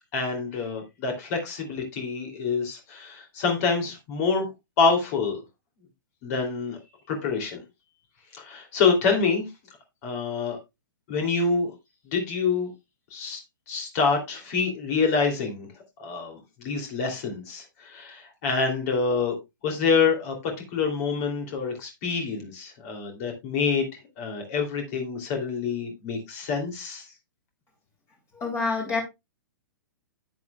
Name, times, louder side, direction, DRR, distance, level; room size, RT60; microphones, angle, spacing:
voice 1, 0.1-4.5 4.8-5.4 6.2-6.8 7.1-7.6 8.3-9.4 10.0-10.6 11.1-11.7 12.1-12.7 13.1-13.4 13.7-15.7 16.0-19.3 19.6-23.9 24.2-27.1, left 5 dB, 45° left, 3.0 m, -26 dB
voice 2, 28.3-29.0, left 4 dB, 25° left, 2.9 m, -27 dB
10.5 x 8.6 x 2.3 m
hypercardioid pair, 120°, 11 cm